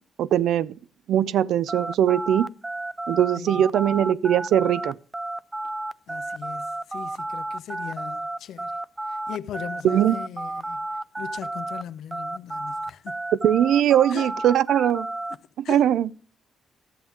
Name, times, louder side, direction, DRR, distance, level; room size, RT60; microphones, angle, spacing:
voice 1, 0.2-0.7 1.1-2.5 3.1-5.0 9.8-10.2 13.4-15.1 15.7-16.1, right 10 dB, 80° right, 0.4 m, -20 dB
sound 1, 1.7-11.8 12.1-15.4, right 2 dB, 15° right, 0.3 m, -32 dB
voice 2, 3.4-3.7 6.1-8.8 9.1-10.9 11.2-13.2 14.1-14.3 15.6-15.9, left 9 dB, 75° left, 0.6 m, -39 dB
13.0 x 7.3 x 3.5 m
cardioid pair, 110°, 0 cm